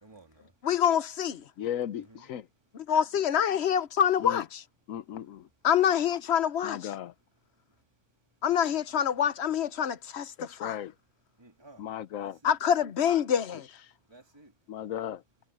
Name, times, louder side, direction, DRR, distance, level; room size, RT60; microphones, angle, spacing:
voice 1, 0.0-0.5 2.0-2.3 11.4-11.9 12.2-12.6 14.1-14.5, right 2 dB, 20° right, 2.6 m, -54 dB
voice 2, 0.6-1.4 2.9-4.6 5.6-6.8 8.4-10.7 12.4-13.7, left 8 dB, 55° left, 1.1 m, -26 dB
voice 3, 1.6-2.5 4.2-4.4 4.9-5.5 6.6-7.1 10.4-10.9 11.8-12.4 13.4-13.9 14.7-15.2, left 10 dB, 85° left, 1.2 m, -36 dB
omnidirectional pair, 1.4 m